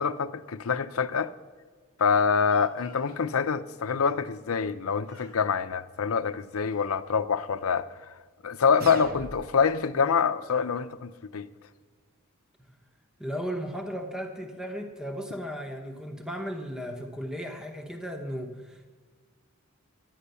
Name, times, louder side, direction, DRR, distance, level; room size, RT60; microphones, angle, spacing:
voice 1, 0.0-1.3 2.0-8.1 8.4-11.5, left 6 dB, 80° left, 0.6 m, -26 dB
Speech, 2.4-3.2 4.5-4.8 5.0-5.4 6.1-7.0, left 1 dB, 85° right, 2.9 m, -55 dB
sound 1, 8.8-9.8, right 2 dB, 45° right, 0.9 m, -40 dB
voice 2, 13.2-18.9, equal, 5° right, 1.0 m, -35 dB
11.5 x 9.9 x 6.8 m
head